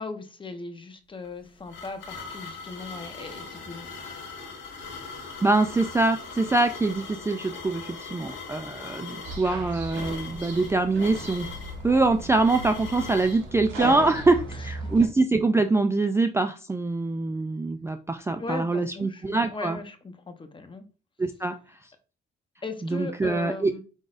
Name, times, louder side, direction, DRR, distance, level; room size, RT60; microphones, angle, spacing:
voice 1, 0.0-3.9 18.4-20.8 22.6-23.8, left 3 dB, 25° left, 7 dB, 0.8 m, -38 dB
sound 1, 1.2-13.4, left 4 dB, 65° left, 1.5 m, -40 dB
voice 2, 5.4-11.5 11.8-19.8 21.2-21.6 22.8-23.7, right 3 dB, 15° right, 7 dB, 0.3 m, -24 dB
sound 2, 9.2-15.1, right 2 dB, 70° right, 1.7 m, -36 dB
5.1 x 3.9 x 2.5 m, 0.35 s
cardioid pair, 90°, 20 cm